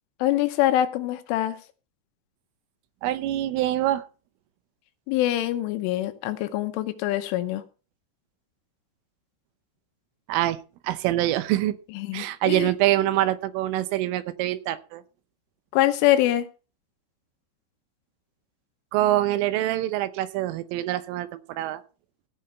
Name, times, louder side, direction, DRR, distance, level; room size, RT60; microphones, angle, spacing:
voice 1, 0.2-1.6 5.1-7.6 11.9-12.7 15.7-16.5, left 14 dB, 80° left, 9 dB, 3.3 m, -24 dB
voice 2, 3.0-4.0 10.3-10.6 10.8-11.8 12.1-15.0 18.9-21.8, right 14 dB, 80° right, 13 dB, 3.4 m, -25 dB
16.5 x 5.9 x 5.6 m, 0.35 s
omnidirectional pair, 5.8 m